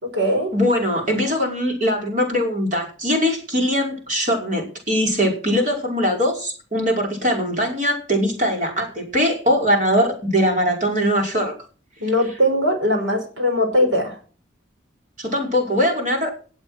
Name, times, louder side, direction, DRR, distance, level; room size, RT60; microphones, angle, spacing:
voice 1, 0.0-0.5 12.0-14.2, equal, 85° right, 4 dB, 4.8 m, -20 dB
voice 2, 0.5-11.5 15.2-16.3, equal, 40° right, 1 dB, 5.5 m, -21 dB
18.5 x 8.1 x 6.4 m, 0.39 s
head